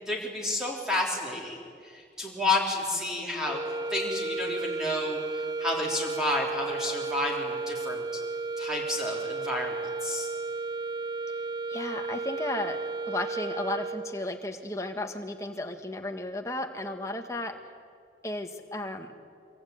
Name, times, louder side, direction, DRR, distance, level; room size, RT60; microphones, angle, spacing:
voice 1, 0.0-3.6 3.9-8.0 8.6-9.8 10.0-10.3, left 2 dB, 5° right, -2 dB, 3.6 m, -31 dB
sound 1, 3.4-14.3, right 3 dB, 25° right, 0.6 m, -33 dB
voice 2, 11.7-12.8 13.1-17.5 18.2-19.1, left 1 dB, 15° left, 4 dB, 1.8 m, -34 dB
25.0 x 24.0 x 9.5 m, 2.3 s
head